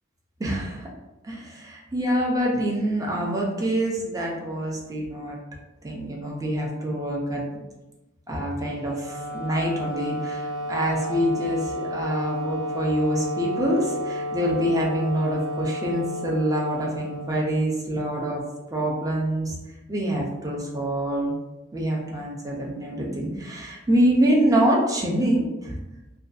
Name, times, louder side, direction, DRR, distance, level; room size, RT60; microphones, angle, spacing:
voice 1, 0.4-0.9 1.2-5.4 5.8-7.4 8.3-18.4 18.7-19.6 19.9-21.3 21.7-25.8, right 1 dB, 15° right, -3 dB, 0.5 m, -25 dB
Wind instrument woodwind instrument, 8.7-18.0, equal, 85° right, 0.5 m, -32 dB
2.5 x 2.2 x 2.4 m, 1.0 s
head